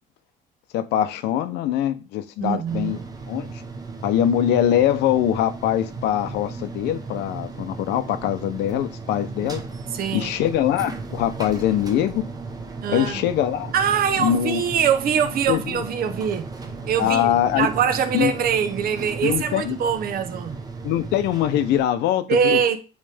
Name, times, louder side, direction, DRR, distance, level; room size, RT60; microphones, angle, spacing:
voice 1, 0.7-3.0 3.3-3.5 4.0-9.6 10.1-12.3 12.9-13.7 14.2-14.6 15.5-15.8 17.0-17.7 18.1-18.3 19.2-19.8 20.8-22.8, left 11 dB, 85° left, 0.7 m, -23 dB
voice 2, 2.4-3.0 9.9-10.4 12.8-13.2 13.7-16.5 16.8-20.6 22.3-22.8, right 7 dB, 60° right, 1.0 m, -23 dB
sound 1, 2.7-21.8, right 3 dB, 20° right, 0.9 m, -35 dB
8.7 x 3.3 x 3.4 m
cardioid pair, 110°, 17 cm